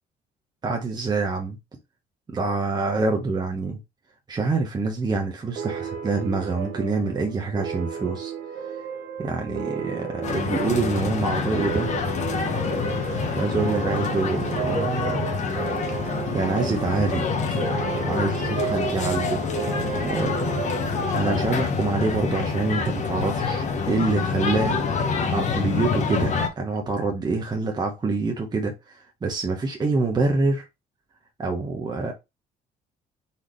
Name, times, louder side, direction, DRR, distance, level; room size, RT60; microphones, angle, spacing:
voice 1, 0.6-1.6 2.3-3.8 4.3-8.3 9.2-11.9 12.3-12.6 13.4-15.3 16.3-17.6 17.9-19.5 20.0-20.5 21.1-30.7 31.4-32.1, right 3 dB, 25° right, 0.9 m, -26 dB
sound 1, 5.6-22.7, right 8 dB, 75° right, 0.8 m, -34 dB
sound 2, 10.2-26.5, left 5 dB, 45° left, 1.1 m, -26 dB
4.2 x 3.5 x 3.2 m
cardioid pair, 110°, 17 cm